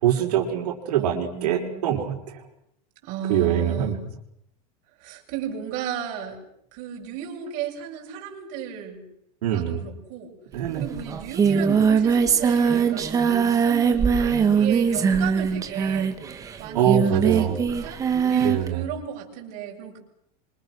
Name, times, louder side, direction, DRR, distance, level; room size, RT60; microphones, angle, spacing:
voice 1, 0.0-2.4 3.3-4.0 9.4-9.8 10.5-10.8 16.7-17.5 18.4-18.9, right 10 dB, 80° right, 0 dB, 5.5 m, -24 dB
voice 2, 1.0-2.0 3.0-4.0 5.0-6.4 6.7-9.0 9.5-10.4 10.8-16.1 16.6-18.0 18.3-20.0, right 8 dB, 40° right, 0 dB, 7.1 m, -34 dB
Singing, 10.6-10.7 11.0-18.7, right 6 dB, 15° right, 1.9 m, -21 dB
28.5 x 26.0 x 6.5 m, 0.72 s
supercardioid pair, 165°, 20 cm